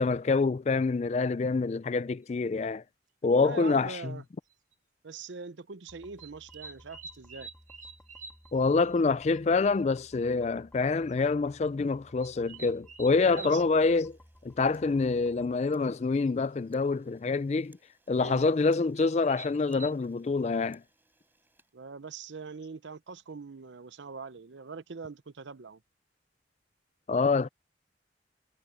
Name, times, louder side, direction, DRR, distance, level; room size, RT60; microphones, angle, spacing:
voice 1, 0.0-2.8 3.2-4.2 8.5-14.2 14.4-17.8 18.1-20.8 27.1-27.5, left 4 dB, 35° left, 0.3 m, -26 dB
sound 1, 2.2-2.3 3.7-3.8 4.5-4.7 6.2-8.5 8.8-8.9 9.2-9.3 9.6-9.7 10.0-10.1 10.9-11.1 12.2-13.6 15.7-15.8 16.0-16.4 18.3-18.4 19.0-19.9, right 3 dB, 40° right, 1.9 m, -47 dB
voice 2, 3.4-4.2 5.0-7.5 13.3-13.6 18.2-18.5 21.7-25.8, right 4 dB, 80° right, 0.7 m, -42 dB
sound 2, 5.9-15.6, equal, 5° left, 2.2 m, -57 dB
Camera, 13.7-22.4, right 3 dB, 10° right, 6.7 m, -69 dB
head